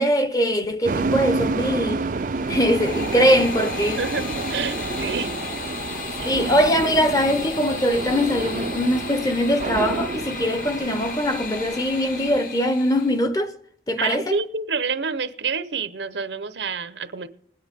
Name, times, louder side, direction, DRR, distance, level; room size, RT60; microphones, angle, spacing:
voice 1, 0.0-2.0 2.5-4.0 6.2-13.5 13.9-14.4, equal, 20° left, 0.8 m, -22 dB
sound 1, 0.8-12.4, right 3 dB, 45° right, 0.4 m, -29 dB
sound 2, 2.1-13.2, left 4 dB, 50° left, 1.5 m, -35 dB
voice 2, 4.5-5.3 6.2-6.3 14.0-17.3, right 5 dB, 85° right, 0.9 m, -28 dB
21.5 x 9.5 x 3.6 m
head